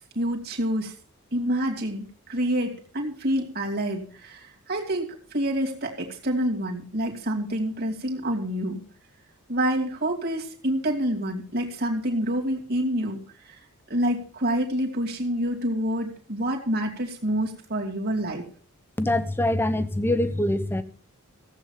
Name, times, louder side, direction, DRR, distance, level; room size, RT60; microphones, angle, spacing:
voice 1, 0.1-0.9 1.3-8.8 9.5-13.2 13.4-13.6 13.9-18.4, equal, 45° right, 2.7 m, -27 dB
voice 2, 19.0-20.8, left 1 dB, 10° left, 0.9 m, -24 dB
15.5 x 8.1 x 5.8 m
head